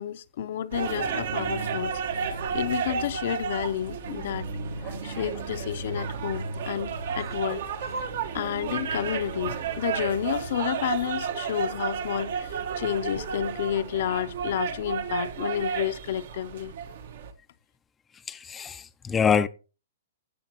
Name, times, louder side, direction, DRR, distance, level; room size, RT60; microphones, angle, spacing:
voice 1, 0.0-4.5 5.0-7.6 8.3-16.7, left 10 dB, 60° left, 0.7 m, -30 dB
sound 1, 0.7-17.3, right 6 dB, 65° right, 1.4 m, -32 dB
voice 2, 4.8-5.2 18.3-19.5, left 7 dB, 15° left, 0.5 m, -26 dB
15.5 x 6.9 x 3.0 m
hypercardioid pair, 145°, 0 cm